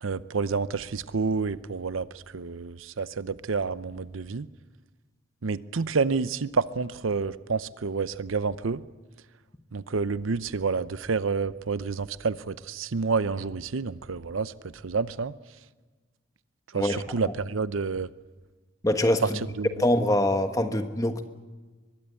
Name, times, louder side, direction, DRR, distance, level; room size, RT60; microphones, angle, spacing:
voice 1, 0.0-4.5 5.4-8.8 9.7-14.5 14.8-15.3 16.7-18.1 19.6-19.7, right 4 dB, 80° right, 16 dB, 0.7 m, -29 dB
voice 2, 16.7-17.3 18.8-19.4 19.8-21.2, left 1 dB, 15° left, 7 dB, 1.3 m, -24 dB
23.0 x 22.0 x 8.4 m, 1.4 s
head